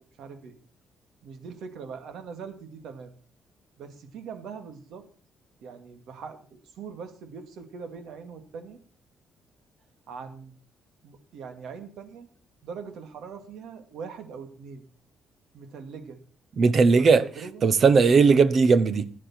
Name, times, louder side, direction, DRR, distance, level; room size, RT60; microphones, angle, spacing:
voice 1, 0.2-0.5 1.2-3.1 3.8-5.0 5.6-8.8 10.1-10.5 11.0-12.3 12.6-14.8 15.5-16.2 17.0-17.6, right 5 dB, 75° right, 2.2 m, -41 dB
voice 2, 16.6-17.2 17.6-19.1, right 4 dB, 35° right, 0.9 m, -18 dB
15.0 x 9.9 x 4.4 m
cardioid pair, 165°, 0 cm